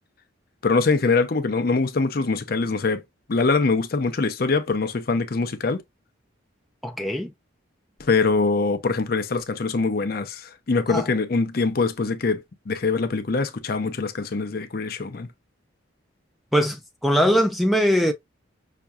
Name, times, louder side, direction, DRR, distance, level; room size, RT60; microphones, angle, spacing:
voice 1, 0.6-3.0 3.3-5.8 8.0-15.3, left 4 dB, 45° left, 0.5 m, -23 dB
voice 2, 6.8-7.3 10.9-11.1 16.5-18.1, equal, ahead, 0.4 m, -21 dB
5.8 x 2.6 x 2.3 m
head